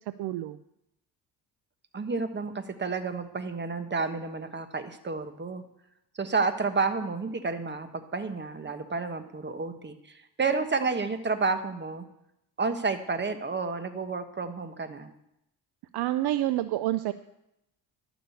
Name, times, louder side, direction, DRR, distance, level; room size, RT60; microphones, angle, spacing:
voice 1, 0.2-0.6 15.9-17.1, right 14 dB, 70° right, 13 dB, 0.6 m, -28 dB
voice 2, 1.9-5.6 6.1-12.1 12.6-15.1, right 4 dB, 25° right, 9 dB, 1.2 m, -30 dB
11.5 x 6.1 x 8.2 m, 0.83 s
cardioid pair, 95°, 41 cm